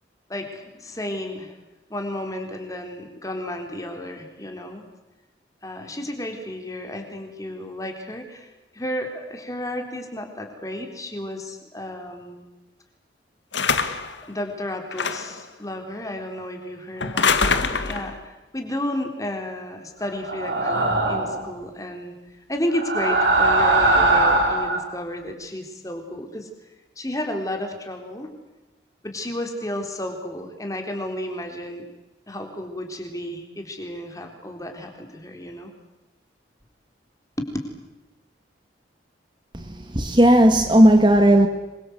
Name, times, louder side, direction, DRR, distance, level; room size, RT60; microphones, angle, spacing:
voice 1, 0.3-1.5 1.9-4.8 5.6-12.5 14.3-22.1 22.5-26.5 27.0-28.3 29.0-31.8 32.3-35.7 37.4-37.5, left 1 dB, 20° left, 3.8 m, -32 dB
sound 1, 13.5-14.2 14.9-15.4 17.0-18.1, left 5 dB, 90° left, 2.1 m, -23 dB
sound 2, 20.2-21.4 22.7-24.9, right 2 dB, 80° right, 4.8 m, -20 dB
voice 2, 39.9-41.5, right 1 dB, 25° right, 1.7 m, -14 dB
26.5 x 23.0 x 8.1 m
head